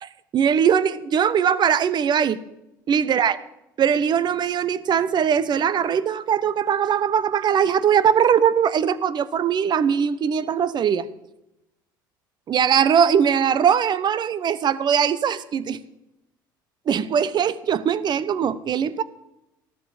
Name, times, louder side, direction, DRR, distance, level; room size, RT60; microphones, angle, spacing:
voice 1, 0.0-2.4 2.9-3.4 3.8-11.1 12.5-15.8 16.9-19.0, right 8 dB, 45° right, 17 dB, 0.9 m, -21 dB
13.5 x 12.5 x 5.0 m, 0.88 s
hypercardioid pair, 70°, 11 cm